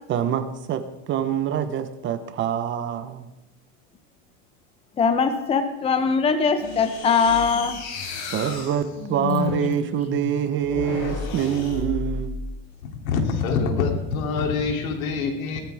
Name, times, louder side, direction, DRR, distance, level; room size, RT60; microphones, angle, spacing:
voice 1, 0.1-3.3 8.3-12.3, right 9 dB, 30° right, 10 dB, 1.0 m, -25 dB
voice 2, 5.0-7.8, left 5 dB, 15° left, 8 dB, 0.9 m, -21 dB
sound 1, 6.6-12.5 13.4-14.1, left 5 dB, 50° left, 4.5 m, -31 dB
voice 3, 12.8-15.6, left 5 dB, 85° left, 3 dB, 3.1 m, -25 dB
19.0 x 13.5 x 3.5 m, 0.93 s
supercardioid pair, 140°, 40 cm